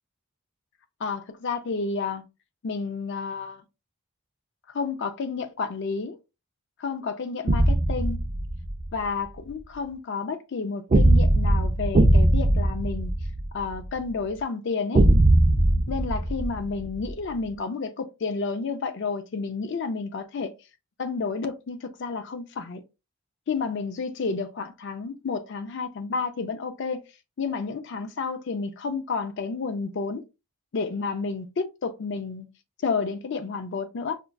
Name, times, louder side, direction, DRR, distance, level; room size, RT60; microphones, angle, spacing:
voice 1, 1.0-2.2 2.6-3.6 4.7-6.2 6.8-8.2 8.9-13.1 13.5-15.1 15.9-20.5 21.0-22.8 23.5-27.0 27.4-30.2 30.7-32.5 32.8-34.2, left 4 dB, 55° left, 0.4 m, -30 dB
sound 1, 7.5-8.8 10.9-13.9 14.9-17.1, right 1 dB, 30° right, 0.3 m, -20 dB
5.1 x 2.2 x 2.2 m
head